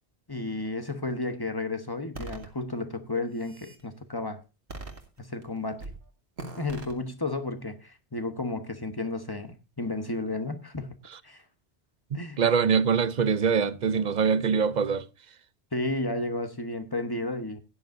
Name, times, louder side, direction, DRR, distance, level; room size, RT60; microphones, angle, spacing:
voice 1, 0.3-4.4 5.2-5.9 6.6-11.0 11.2-11.4 12.1-12.4 15.7-17.6, left 2 dB, 20° left, 1.2 m, -32 dB
sound 1, 2.1-2.5 3.2-3.8 4.7-5.4 5.8-6.0 6.4-6.9, right 3 dB, 70° right, 2.1 m, -40 dB
voice 2, 12.4-15.0, right 6 dB, 45° right, 0.7 m, -23 dB
16.5 x 10.5 x 2.6 m
omnidirectional pair, 1.1 m